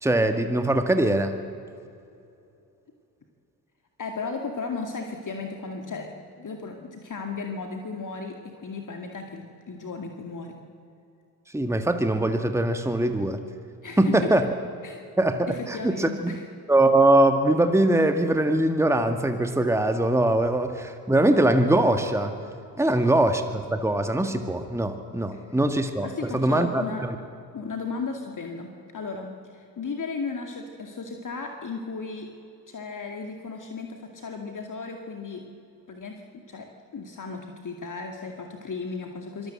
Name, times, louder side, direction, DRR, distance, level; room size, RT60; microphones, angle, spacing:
voice 1, 0.0-1.3 11.5-13.4 14.0-14.5 15.2-16.4 16.7-22.3 22.8-26.1 26.3-27.2, right 1 dB, 5° right, 7 dB, 1.8 m, -22 dB
voice 2, 4.0-10.6 13.8-14.3 14.8-15.0 15.5-16.4 22.8-23.1 25.3-25.4 26.0-27.0 27.5-32.3 32.7-35.4 35.9-39.5, left 4 dB, 40° left, 3 dB, 2.3 m, -35 dB
25.0 x 19.5 x 7.8 m, 2.6 s
hypercardioid pair, 45°, 49 cm